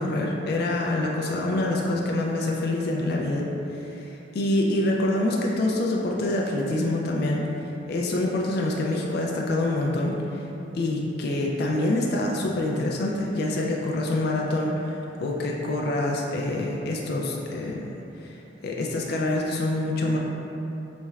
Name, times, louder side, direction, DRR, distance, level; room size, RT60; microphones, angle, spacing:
voice 1, 0.0-7.5 7.9-10.4 10.7-17.8 18.2-18.3 18.6-20.2, left 1 dB, 55° left, -1 dB, 0.3 m, -26 dB
4.2 x 3.1 x 2.3 m, 3.0 s
head